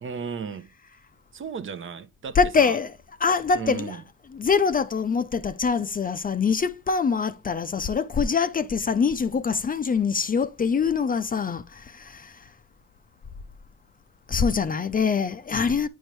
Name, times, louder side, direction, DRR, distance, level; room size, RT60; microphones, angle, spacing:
voice 1, 0.0-0.7 1.3-2.7 3.5-4.0, right 6 dB, 40° right, 0.7 m, -34 dB
voice 2, 2.3-4.0 4.3-12.5 14.3-15.9, left 5 dB, 30° left, 0.5 m, -24 dB
9.1 x 4.5 x 3.1 m
cardioid pair, 90°, 30 cm